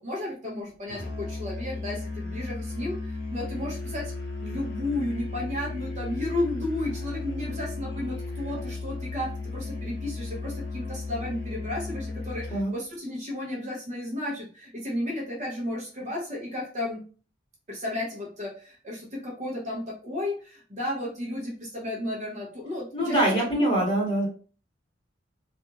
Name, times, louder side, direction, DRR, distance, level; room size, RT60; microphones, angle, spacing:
voice 1, 0.0-4.1 4.4-17.0 17.7-23.6, left 1 dB, 40° right, -3 dB, 0.8 m, -33 dB
Musical instrument, 0.9-12.7, left 3 dB, 60° left, 0.9 m, -35 dB
voice 2, 22.9-24.3, right 1 dB, 30° left, -5 dB, 1.5 m, -24 dB
2.8 x 2.5 x 2.3 m, 0.39 s
head